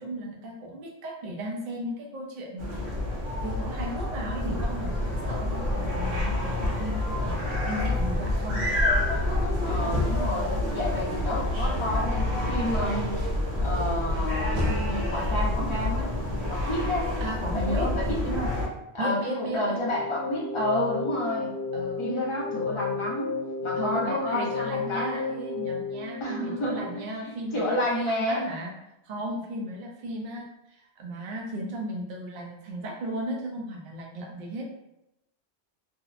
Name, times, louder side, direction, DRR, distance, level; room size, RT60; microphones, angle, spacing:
voice 1, 0.0-2.9 3.4-8.7 17.2-17.9 19.0-19.9 21.7-22.3 23.8-28.7 29.1-34.6, right 1 dB, 60° right, 0 dB, 0.6 m, -35 dB
sound 1, 2.6-18.7, left 1 dB, 85° right, 0.9 m, -28 dB
voice 2, 9.6-10.5 10.7-13.1 13.6-16.1 16.5-17.1 17.5-18.5 18.9-21.5 22.0-23.3 23.6-25.2 26.2-28.5, left 1 dB, 35° left, -4 dB, 0.5 m, -30 dB
sound 2, 19.8-27.1, left 5 dB, 75° left, 0.8 m, -32 dB
2.7 x 2.0 x 2.4 m, 0.87 s
omnidirectional pair, 1.1 m